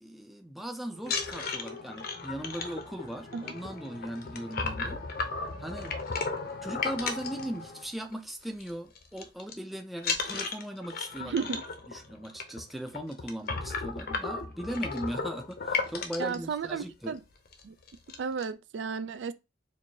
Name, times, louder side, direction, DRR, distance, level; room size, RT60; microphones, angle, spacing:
voice 1, 0.0-5.0 5.6-5.9 6.6-11.4 11.9-17.2, right 1 dB, ahead, 0.4 m, -38 dB
sound 1, 1.0-8.1 8.4-8.7 9.0-9.5 10.0-16.4 17.0-17.1 17.5-17.6 17.9-18.4, left 4 dB, 55° left, 0.7 m, -35 dB
voice 2, 11.2-11.6 16.2-17.2 17.6-17.7 18.2-19.3, right 5 dB, 75° right, 0.4 m, -33 dB
4.4 x 2.6 x 2.7 m
head